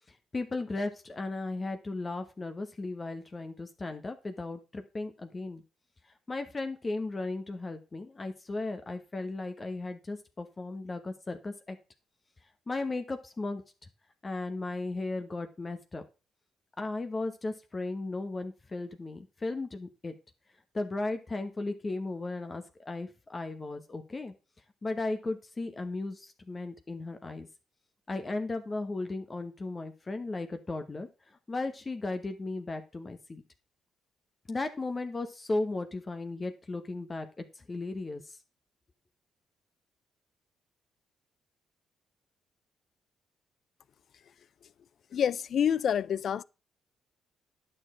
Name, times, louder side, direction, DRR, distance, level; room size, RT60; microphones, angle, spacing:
voice 1, 0.1-5.6 6.3-11.8 12.7-13.6 14.2-16.0 16.8-20.1 20.7-24.3 24.8-27.5 28.1-31.1 31.5-33.4 34.5-38.4, left 2 dB, 30° left, 1.1 m, -36 dB
voice 2, 45.1-46.4, left 8 dB, 60° left, 0.4 m, -27 dB
9.9 x 6.7 x 3.7 m
cardioid pair, 80°, 0 cm